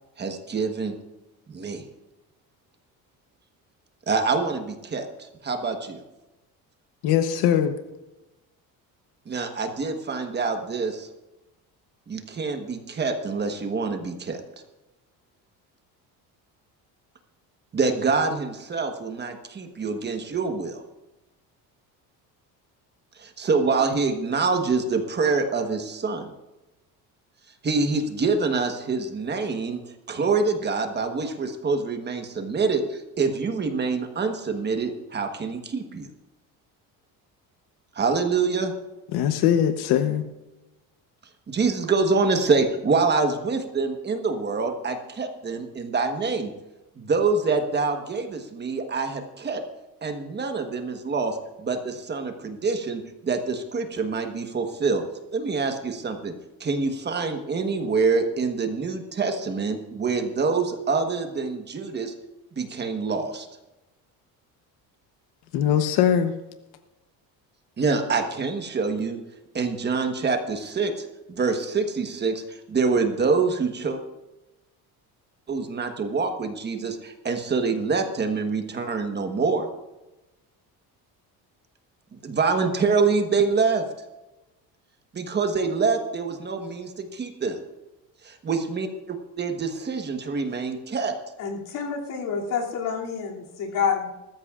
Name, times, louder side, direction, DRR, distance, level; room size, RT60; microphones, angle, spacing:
voice 1, 0.2-0.9 1.5-1.8 4.1-6.0 9.3-11.1 12.1-14.4 17.7-20.8 23.2-26.3 27.6-29.8 30.1-36.1 37.9-38.7 41.5-46.5 47.0-49.6 50.0-55.0 55.3-56.3 56.6-62.1 62.5-63.5 67.8-69.2 69.5-74.0 75.5-79.7 82.1-83.8 85.1-87.6 88.2-91.1, right 4 dB, 25° right, 1.2 m, -26 dB
voice 2, 7.0-7.7 39.1-40.2 65.5-66.3, left 9 dB, 80° left, 1.0 m, -21 dB
voice 3, 91.4-94.1, left 6 dB, 60° left, 2.8 m, -28 dB
20.0 x 13.5 x 2.5 m
cardioid pair, 140°, 38 cm